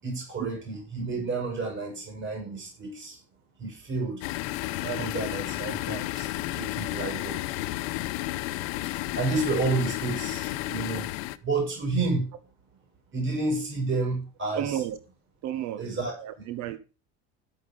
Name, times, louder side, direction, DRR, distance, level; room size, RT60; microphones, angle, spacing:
voice 1, 0.0-3.2 3.6-4.2 4.8-7.4 8.8-11.1 11.4-12.3 13.1-14.8 15.8-16.1, right 3 dB, 40° right, 7.1 m, -30 dB
sound 1, 4.2-11.4, left 17 dB, 85° left, 0.8 m, -32 dB
voice 2, 14.5-15.0 15.4-16.8, right 11 dB, 65° right, 1.1 m, -33 dB
11.0 x 8.4 x 5.4 m
supercardioid pair, 100°, 30 cm